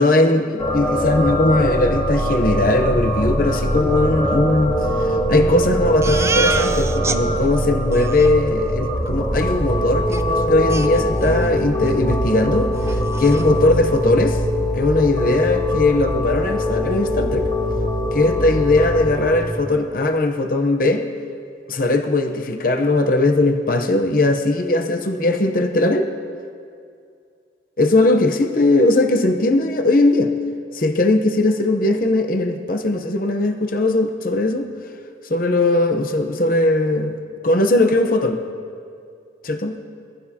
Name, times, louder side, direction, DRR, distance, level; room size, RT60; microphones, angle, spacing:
voice 1, 0.0-14.4 14.7-17.5 18.1-21.1 21.7-26.1 27.8-30.3 30.7-34.7 35.3-37.2 37.4-38.4 39.4-39.7, left 2 dB, 50° left, 4 dB, 0.8 m, -19 dB
sound 1, 0.6-19.4, equal, 25° left, 2.7 m, -22 dB
Crying sobbing, 6.0-7.2 7.6-7.7 7.9-8.3 10.1-10.2 10.7-11.5 11.8-12.0 12.4-12.5 12.8-13.5, right 4 dB, 15° right, 0.4 m, -27 dB
24.0 x 15.5 x 2.8 m, 2.3 s
head